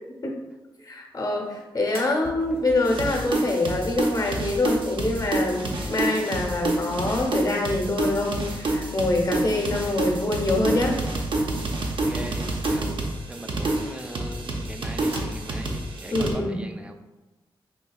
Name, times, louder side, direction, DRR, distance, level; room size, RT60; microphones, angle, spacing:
voice 1, 0.8-11.0 16.1-16.6, left 2 dB, 40° left, 0 dB, 0.8 m, -25 dB
sound 1, 1.4-2.9 3.7-4.6 5.6-6.7 7.1-8.5 9.0-10.6 10.9-11.0 11.4-13.3 13.7-15.3, right 1 dB, 80° right, 1.0 m, -47 dB
sound 2, 2.2-7.6, right 1 dB, 80° left, 0.6 m, -43 dB
sound 3, 2.9-16.3, right 2 dB, 65° right, 0.6 m, -28 dB
voice 2, 11.9-17.0, right 1 dB, 10° right, 5 dB, 0.4 m, -40 dB
3.8 x 2.7 x 2.3 m, 1.1 s
cardioid pair, 55°, 9 cm